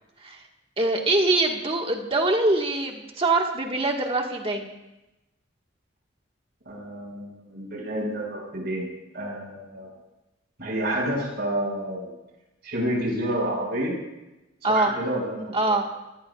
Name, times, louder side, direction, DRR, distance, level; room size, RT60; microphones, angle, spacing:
voice 1, 0.8-4.7 14.6-14.9 15.5-15.9, right 2 dB, 30° right, 2 dB, 1.7 m, -23 dB
voice 2, 6.6-8.9 9.1-9.9 10.6-12.1 12.6-14.0 14.6-15.7, right 1 dB, 55° right, -1 dB, 6.1 m, -29 dB
28.5 x 19.0 x 2.5 m, 0.98 s
head